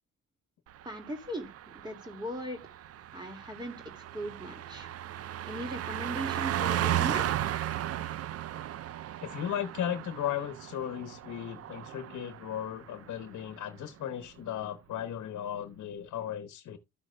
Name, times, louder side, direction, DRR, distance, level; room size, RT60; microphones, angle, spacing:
Car passing by, 0.8-12.7 13.0-13.2, right 12 dB, 55° right, 0.5 m, -35 dB
voice 1, 0.9-2.6 3.1-4.9 5.4-7.4, right 1 dB, 15° right, 2.1 m, -39 dB
voice 2, 9.2-16.8, left 10 dB, 70° left, 1.1 m, -36 dB
14.0 x 6.2 x 2.2 m
cardioid pair, 90°, 30 cm